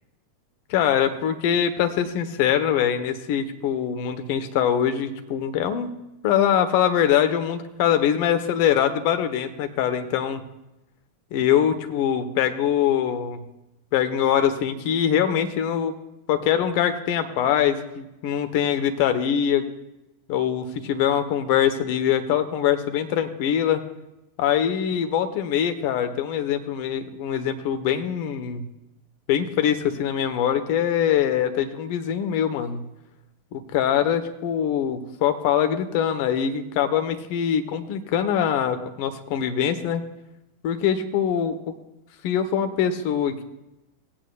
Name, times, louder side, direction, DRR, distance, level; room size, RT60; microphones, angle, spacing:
voice 1, 0.7-5.9 6.2-10.4 11.3-13.4 13.9-16.0 16.3-19.6 20.3-23.8 24.4-28.6 29.3-32.8 33.5-40.0 40.6-41.8 42.2-43.4, left 9 dB, 50° left, 9 dB, 1.1 m, -23 dB
17.5 x 8.8 x 2.4 m, 0.93 s
figure-of-eight pair, 90°, 0 cm